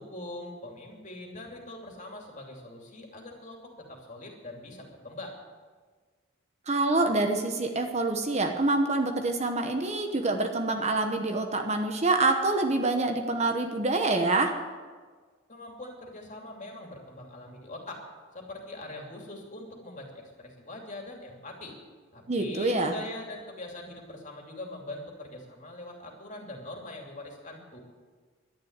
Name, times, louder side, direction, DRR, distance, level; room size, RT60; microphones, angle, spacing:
voice 1, 0.0-5.4 15.5-18.0 18.3-21.7 22.1-27.8, left 1 dB, 40° left, 1 dB, 2.8 m, -42 dB
voice 2, 6.7-14.6 22.3-22.9, right 2 dB, 35° right, 4 dB, 1.1 m, -26 dB
11.5 x 10.5 x 9.6 m, 1.5 s
head